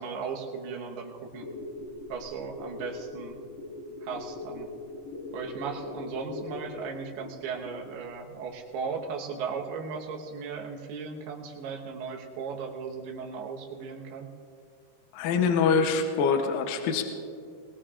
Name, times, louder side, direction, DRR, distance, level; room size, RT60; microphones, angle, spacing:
voice 1, 0.0-1.5 2.1-3.4 4.0-4.7 5.3-14.3, right 5 dB, 75° right, 0 dB, 3.2 m, -36 dB
sound 1, 1.3-8.1 8.4-8.5, left 2 dB, 50° left, 3.1 m, -41 dB
voice 2, 15.1-17.0, left 5 dB, 70° left, 4 dB, 2.3 m, -24 dB
20.5 x 20.0 x 2.5 m, 2.5 s
omnidirectional pair, 4.7 m